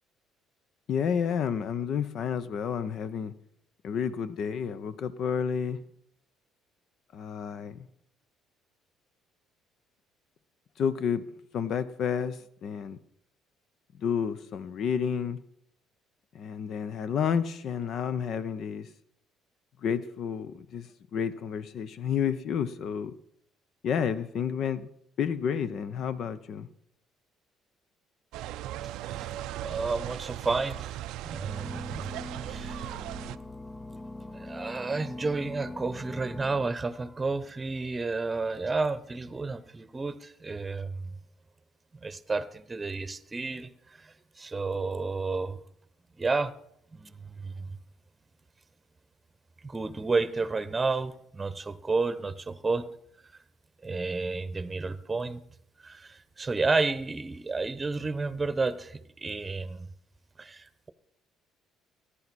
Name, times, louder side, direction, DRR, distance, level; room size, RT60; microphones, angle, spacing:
voice 1, 0.9-3.3 3.8-5.8 7.1-7.8 10.8-11.2 11.5-12.4 12.6-13.0 14.0-15.4 16.3-18.9 19.8-23.1 23.8-24.9 25.2-26.7, left 7 dB, 60° left, 14 dB, 0.8 m, -30 dB
sound 1, 28.3-33.4, right 14 dB, 75° right, 0.4 m, -38 dB
voice 2, 29.6-31.0 31.2-32.1 32.4-32.8 34.3-41.1 42.0-43.7 44.0-45.6 46.2-46.5 46.9-47.7 49.6-52.9 53.8-55.4 55.8-59.9 60.4-60.9, right 3 dB, 25° right, 14 dB, 0.9 m, -31 dB
sound 2, 31.5-36.7, left 2 dB, 25° left, 0.6 m, -42 dB
14.5 x 10.0 x 4.2 m, 0.72 s
supercardioid pair, 70°, 0 cm